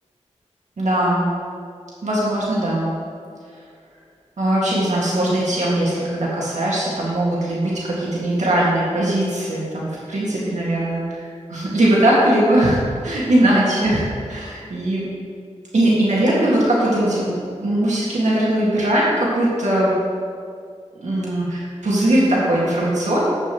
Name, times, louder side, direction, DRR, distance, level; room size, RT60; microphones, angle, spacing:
voice 1, 0.8-1.3 2.0-2.9 4.4-15.0 15.7-17.3 17.6-20.0 21.0-23.2, right 1 dB, 85° right, -6 dB, 1.9 m, -20 dB
11.0 x 8.0 x 3.0 m, 2.2 s
wide cardioid pair, 55°, 12 cm